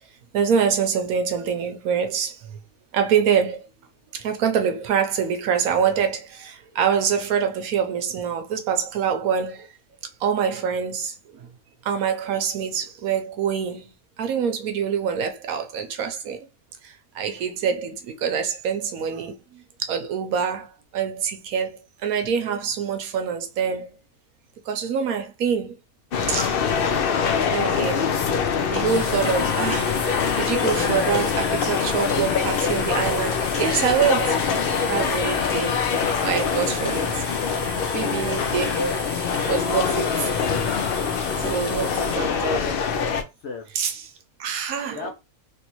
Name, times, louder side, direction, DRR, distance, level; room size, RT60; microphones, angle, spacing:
voice 1, 0.3-2.6 2.9-3.6 4.1-9.7 10.2-11.4 11.8-13.9 14.2-16.5 16.8-19.4 19.8-20.7 20.9-23.9 24.7-25.8 26.3-26.6 27.3-28.1 28.7-34.4 34.9-35.8 36.2-37.2 37.9-38.8 39.5-40.3 41.4-42.6 43.7-44.0 44.4-45.1, right 7 dB, 75° right, 1.1 m, -25 dB
sound 1, 26.1-43.2, left 6 dB, 85° left, 0.5 m, -24 dB
sound 2, 28.8-42.2, left 1 dB, 25° left, 0.5 m, -36 dB
voice 2, 38.7-39.1 41.2-43.1 43.4-43.7 44.4-44.5 44.9-45.1, left 2 dB, 60° left, 0.8 m, -35 dB
3.3 x 2.6 x 2.9 m
omnidirectional pair, 1.6 m